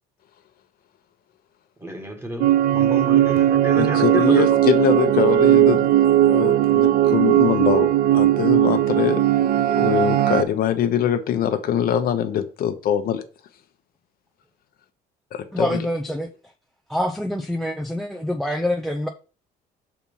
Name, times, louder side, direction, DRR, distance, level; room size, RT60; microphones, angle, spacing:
voice 1, 1.8-4.4, right 1 dB, 15° right, 1.8 m, -31 dB
sound 1, 2.4-10.4, right 12 dB, 60° right, 0.5 m, -18 dB
voice 2, 3.8-7.9 8.1-9.2 9.7-13.2 15.3-15.9, left 9 dB, 60° left, 1.0 m, -23 dB
voice 3, 15.5-16.3 16.9-19.1, left 1 dB, ahead, 0.6 m, -25 dB
5.9 x 4.3 x 5.6 m
cardioid pair, 110°, 17 cm